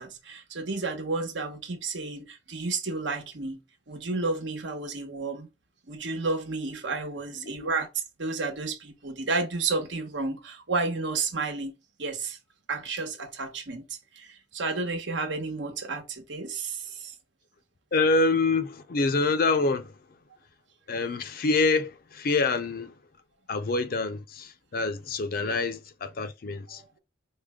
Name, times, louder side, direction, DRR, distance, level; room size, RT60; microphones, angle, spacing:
voice 1, 0.0-3.6 3.9-5.5 5.9-11.7 12.0-12.4 12.7-13.8 14.2-17.1 25.4-25.5 26.7-27.0, right 3 dB, 80° right, 1.1 m, -31 dB
voice 2, 7.3-7.7 17.9-20.0 20.9-22.9 23.5-26.8, left 3 dB, 50° left, 0.5 m, -26 dB
4.8 x 2.1 x 3.5 m
head